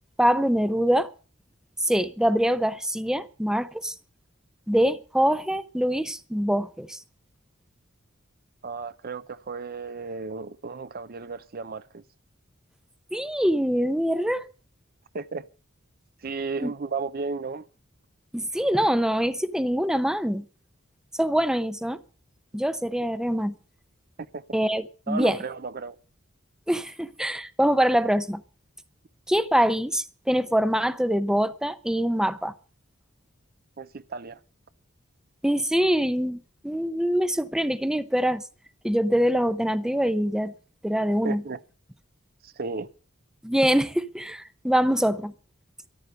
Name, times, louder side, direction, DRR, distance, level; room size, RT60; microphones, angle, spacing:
voice 1, 0.2-1.1 1.8-3.9 4.7-7.0 13.1-14.4 16.6-16.7 18.3-20.4 21.2-22.0 22.5-23.5 24.5-25.4 26.7-28.4 29.3-32.5 35.4-36.4 36.6-38.4 38.8-40.5 40.8-41.4 43.4-45.3, equal, 5° right, 0.6 m, -24 dB
voice 2, 8.6-12.0 15.1-15.4 16.2-17.7 24.3-24.4 25.1-26.0 33.8-34.4 41.2-41.6 42.4-42.9, right 4 dB, 50° right, 0.6 m, -34 dB
14.0 x 11.5 x 6.6 m
head